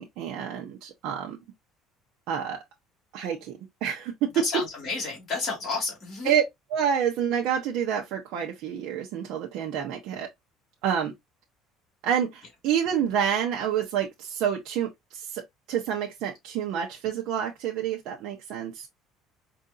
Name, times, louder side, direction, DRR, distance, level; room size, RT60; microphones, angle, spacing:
voice 1, 0.0-1.4 2.3-2.6 3.1-4.3 6.2-6.4 6.7-10.3 10.8-11.1 12.0-15.4 15.7-18.9, right 8 dB, 60° right, 0.8 m, -28 dB
voice 2, 4.3-6.3, left 4 dB, 25° left, 2.4 m, -31 dB
4.6 x 2.6 x 2.5 m
cardioid pair, 170°, 0 cm